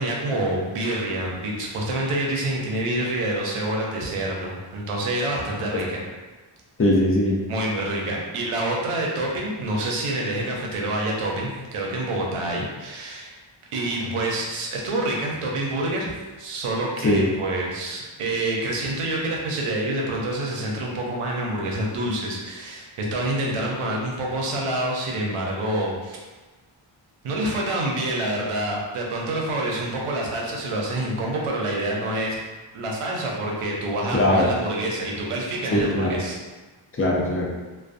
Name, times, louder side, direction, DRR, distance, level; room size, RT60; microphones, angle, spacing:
voice 1, 0.0-6.0 7.5-13.3 13.7-16.1 16.4-26.2 27.2-32.4 32.7-36.3, right 1 dB, 90° right, -2 dB, 0.6 m, -27 dB
voice 2, 6.8-7.4 17.0-17.3 34.1-34.5 35.7-36.2 36.9-37.5, left 1 dB, 30° left, -3 dB, 0.5 m, -20 dB
2.3 x 2.2 x 2.5 m, 1.2 s
cardioid pair, 50°, 50 cm